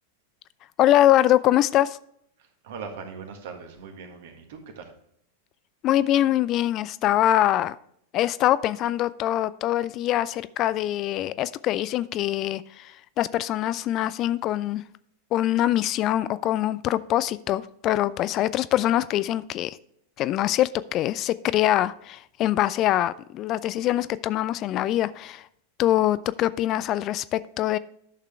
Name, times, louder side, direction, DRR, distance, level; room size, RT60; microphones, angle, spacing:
voice 1, 0.8-2.0 5.8-7.7 8.1-14.8 15.3-19.8 20.2-25.4 25.8-27.8, left 13 dB, 35° left, 0.3 m, -23 dB
voice 2, 2.4-4.9, right 5 dB, 55° right, 1.7 m, -40 dB
11.0 x 6.6 x 3.4 m
figure-of-eight pair, 90°, 0 cm